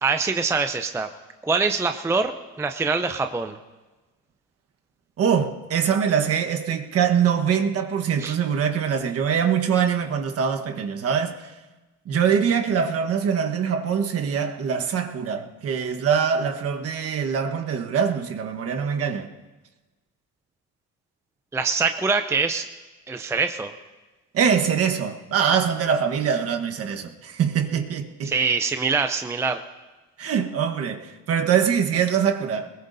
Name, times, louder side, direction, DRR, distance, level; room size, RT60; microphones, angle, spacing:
voice 1, 0.0-1.1 1.4-3.6 8.2-8.4 21.5-22.7 23.1-23.7 28.2-29.6, right 4 dB, 10° right, 0.5 m, -24 dB
voice 2, 5.2-11.5 12.0-19.3 24.3-28.3 30.2-32.7, right 7 dB, 45° right, 1.3 m, -23 dB
22.5 x 21.0 x 2.7 m
cardioid pair, 115°, 33 cm